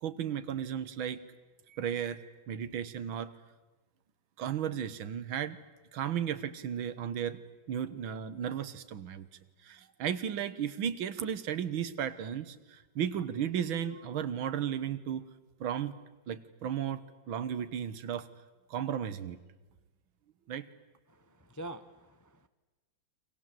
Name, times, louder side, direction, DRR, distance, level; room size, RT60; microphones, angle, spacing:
voice 1, 0.0-1.2 1.7-3.3 4.4-5.6 5.9-7.4 7.7-9.3 9.6-15.3 15.6-15.9 16.3-18.3 18.7-19.4 20.5-20.7, right 9 dB, 85° right, 14 dB, 2.0 m, -34 dB
voice 2, 21.1-22.5, right 1 dB, 20° left, 10 dB, 0.4 m, -46 dB
29.5 x 25.0 x 7.6 m, 1.2 s
omnidirectional pair, 2.1 m